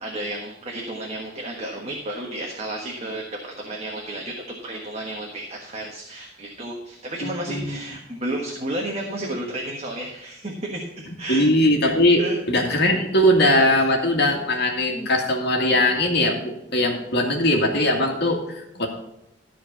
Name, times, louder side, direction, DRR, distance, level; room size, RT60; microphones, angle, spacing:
voice 1, 0.0-11.5 12.2-12.4 14.9-15.1, right 1 dB, 35° right, -1 dB, 1.4 m, -32 dB
voice 2, 7.2-7.8 11.3-18.9, left 1 dB, 55° left, 1 dB, 2.0 m, -20 dB
13.5 x 4.5 x 7.0 m, 0.86 s
head